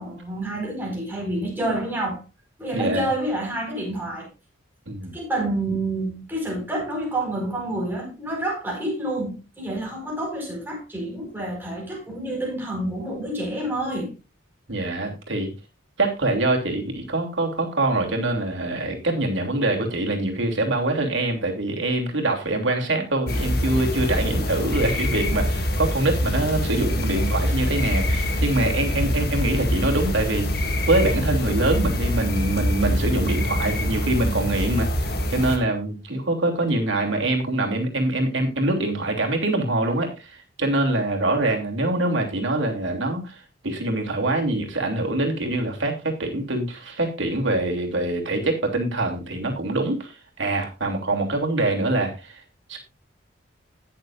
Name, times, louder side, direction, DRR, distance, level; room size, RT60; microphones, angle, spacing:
voice 1, 0.0-2.2 2.6-4.3 5.1-14.1, right 1 dB, 10° right, 4.8 m, -28 dB
voice 2, 2.7-3.0 4.9-5.1 14.7-15.5 16.0-52.4 52.7-52.8, right 2 dB, 70° right, 3.1 m, -24 dB
sound 1, 23.3-35.6, left 1 dB, 50° left, 2.0 m, -24 dB
20.0 x 6.9 x 2.6 m
head